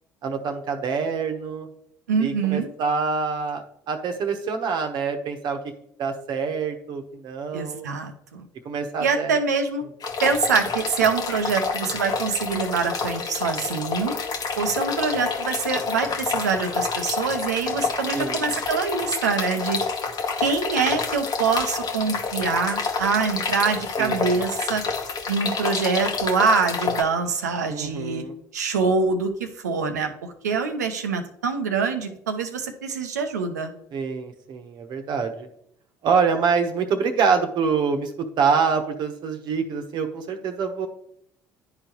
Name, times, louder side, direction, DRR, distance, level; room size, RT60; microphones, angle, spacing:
voice 1, 0.2-1.7 2.2-5.6 6.0-7.9 8.6-9.4 18.1-18.5 24.0-24.4 27.7-28.3 33.9-35.5 36.0-40.9, right 5 dB, 55° right, 5 dB, 1.0 m, -26 dB
voice 2, 2.1-2.7 7.5-8.5 9.0-9.8 10.2-14.2 14.6-19.8 20.4-24.8 25.3-28.2 28.5-33.7, right 5 dB, 90° right, 7 dB, 0.7 m, -25 dB
sound 1, 10.0-27.0, left 5 dB, 50° left, 1.0 m, -28 dB
10.5 x 3.9 x 3.0 m, 0.71 s
hypercardioid pair, 60°, 9 cm